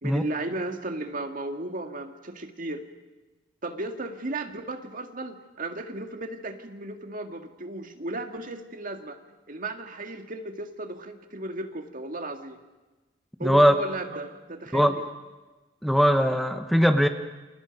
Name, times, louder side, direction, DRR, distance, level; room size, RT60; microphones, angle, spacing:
voice 1, 0.0-2.8 3.6-9.2 9.5-12.6 13.4-15.1, right 2 dB, 45° right, 6 dB, 2.1 m, -35 dB
voice 2, 13.4-13.7 14.7-14.9 15.8-17.1, equal, ahead, 7 dB, 1.0 m, -20 dB
29.5 x 28.0 x 5.4 m, 1.2 s
head